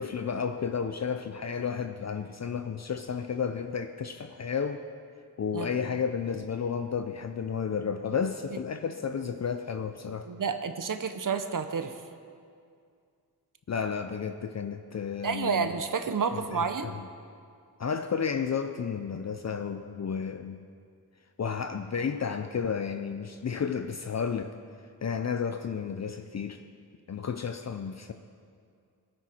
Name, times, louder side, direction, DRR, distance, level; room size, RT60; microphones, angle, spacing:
voice 1, 0.0-4.8 5.4-10.3 13.7-15.7 16.3-17.0 17.8-20.7 21.4-24.5 25.0-26.6 27.1-28.1, left 6 dB, 50° left, 7 dB, 0.6 m, -32 dB
voice 2, 10.3-12.0 15.2-16.9, right 6 dB, 60° right, 8 dB, 0.8 m, -30 dB
19.5 x 12.0 x 4.5 m, 2.3 s
wide cardioid pair, 120°, 36 cm